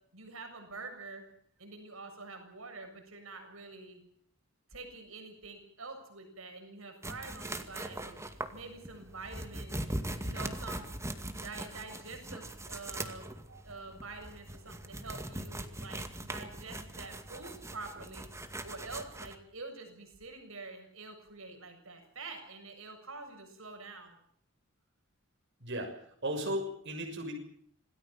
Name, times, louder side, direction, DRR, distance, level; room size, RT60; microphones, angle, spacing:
voice 1, 0.1-1.2 1.6-4.0 4.7-8.1 8.5-9.8 10.2-10.9 11.4-13.3 13.6-18.3 18.6-24.2, right 3 dB, 75° right, 5 dB, 7.1 m, -46 dB
sound 1, 7.0-19.3, right 1 dB, 15° right, 2.2 m, -41 dB
voice 2, 25.6-25.9 26.2-27.3, equal, 60° right, 2 dB, 6.7 m, -35 dB
27.0 x 18.5 x 7.4 m, 0.62 s
head